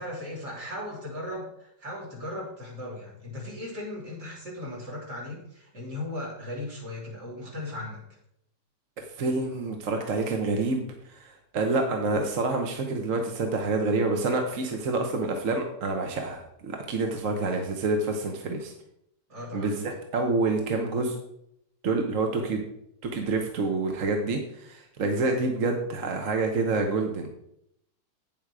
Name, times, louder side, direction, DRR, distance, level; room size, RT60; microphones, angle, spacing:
voice 1, 0.0-8.0 19.3-19.9, left 1 dB, 70° right, -5 dB, 4.1 m, -37 dB
voice 2, 9.0-18.7 19.5-21.2 21.8-22.6 23.0-27.3, right 3 dB, 50° right, 3 dB, 1.3 m, -27 dB
9.3 x 7.4 x 4.8 m, 0.76 s
omnidirectional pair, 1.9 m